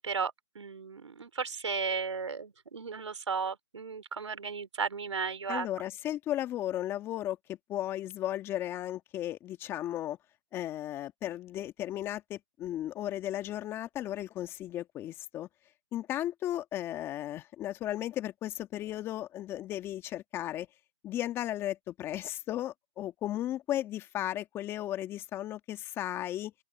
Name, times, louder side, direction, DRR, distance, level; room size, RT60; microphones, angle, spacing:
voice 1, 0.0-5.7, right 5 dB, 80° right, 4.2 m, -35 dB
voice 2, 5.5-10.2 10.5-15.5 15.9-20.7 21.0-26.5, left 13 dB, 15° left, 1.7 m, -35 dB
open air
hypercardioid pair, 150°, 15 cm